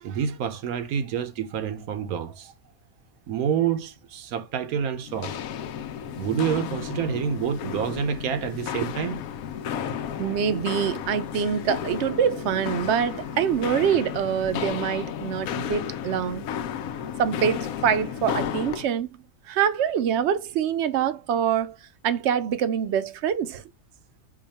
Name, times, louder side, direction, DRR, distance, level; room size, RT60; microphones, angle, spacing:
voice 1, 0.0-2.5 3.3-5.4 6.2-9.3 9.8-10.3, right 8 dB, 85° right, 1.2 m, -28 dB
Walk footsteps, 5.0-18.9, left 9 dB, 80° left, 1.0 m, -33 dB
voice 2, 10.2-16.5 17.2-19.1 19.5-21.7 22.0-23.6, right 8 dB, 65° right, 0.7 m, -25 dB
4.9 x 2.3 x 4.0 m
omnidirectional pair, 1.5 m